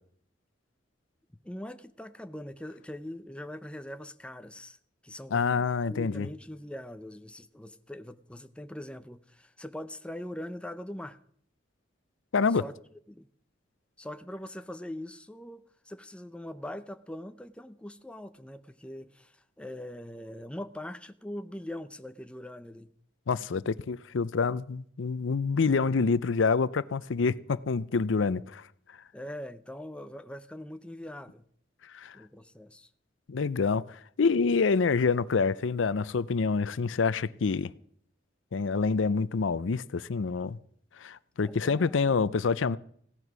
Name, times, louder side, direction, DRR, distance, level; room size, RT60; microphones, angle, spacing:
voice 1, 1.4-4.8 5.0-11.2 12.5-12.8 13.1-13.3 14.0-22.9 29.1-31.4 32.1-32.9 41.4-42.1, left 1 dB, 5° left, 0.6 m, -42 dB
voice 2, 5.3-6.3 12.3-12.6 23.3-28.6 31.9-32.2 33.3-37.7 38.5-40.6 41.0-42.8, left 4 dB, 80° left, 0.5 m, -27 dB
16.5 x 11.0 x 6.2 m
head